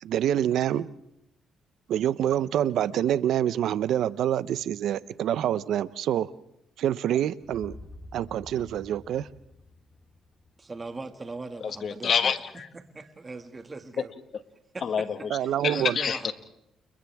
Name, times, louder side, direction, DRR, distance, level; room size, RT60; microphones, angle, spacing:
voice 1, 0.0-0.9 1.9-6.3 6.8-7.8 8.1-9.3 15.3-15.9, right 11 dB, 75° right, 0.7 m, -26 dB
sound 1, 7.4-11.5, left 2 dB, 20° left, 3.4 m, -49 dB
voice 2, 10.6-12.1 12.7-14.1 14.7-14.9 15.7-16.3, right 3 dB, 25° right, 2.0 m, -39 dB
voice 3, 11.6-12.7 14.3-14.4 14.8-15.3 15.6-16.3, left 7 dB, 55° left, 1.7 m, -27 dB
30.0 x 29.5 x 3.6 m
cardioid pair, 90°, 0 cm